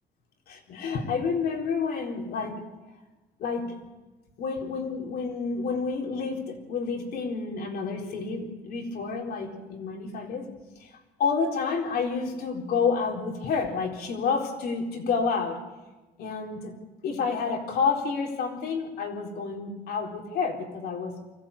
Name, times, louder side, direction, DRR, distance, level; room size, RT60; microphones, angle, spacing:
voice 1, 0.5-2.6 3.4-3.7 4.4-10.5 10.8-10.9 11.2-15.6 16.2-16.7 17.0-21.1, left 5 dB, 65° left, 1 dB, 4.1 m, -29 dB
24.5 x 15.0 x 8.5 m, 1.1 s
cardioid pair, 110°, 17 cm